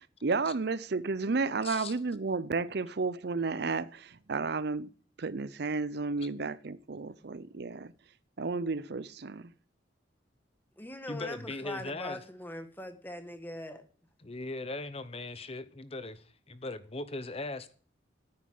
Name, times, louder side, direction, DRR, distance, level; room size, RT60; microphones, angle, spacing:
voice 1, 0.2-4.9 5.2-7.9 8.4-9.5, right 4 dB, 60° right, 0.6 m, -32 dB
voice 2, 1.6-1.9 11.1-12.2 14.2-17.7, left 2 dB, 30° left, 0.9 m, -39 dB
voice 3, 10.8-13.8, left 1 dB, 10° left, 1.5 m, -41 dB
9.8 x 9.3 x 9.5 m
head